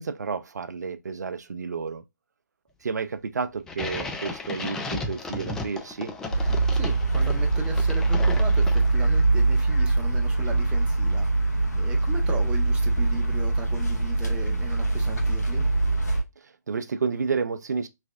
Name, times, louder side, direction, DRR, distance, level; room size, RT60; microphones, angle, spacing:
voice 1, 0.0-2.0 2.8-6.1 16.4-17.9, right 5 dB, 70° right, 0.4 m, -31 dB
sound 1, 3.7-9.2, left 3 dB, 5° left, 0.3 m, -35 dB
sound 2, 6.3-16.2, right 2 dB, 65° left, 1.3 m, -23 dB
voice 2, 6.7-15.6, right 3 dB, 10° right, 0.7 m, -37 dB
3.3 x 3.3 x 2.3 m
figure-of-eight pair, 135°, 10 cm